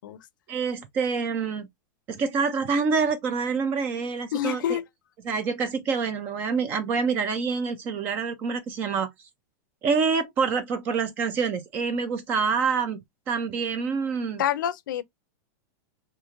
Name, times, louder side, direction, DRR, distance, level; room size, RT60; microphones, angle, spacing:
voice 1, 0.5-1.7 2.1-4.8 5.2-9.1 9.8-13.0 13.3-14.4, right 5 dB, 20° right, 0.3 m, -26 dB
voice 2, 4.3-4.8 14.4-15.0, left 11 dB, 85° left, 0.4 m, -27 dB
3.0 x 2.4 x 2.4 m
supercardioid pair, 180°, 10 cm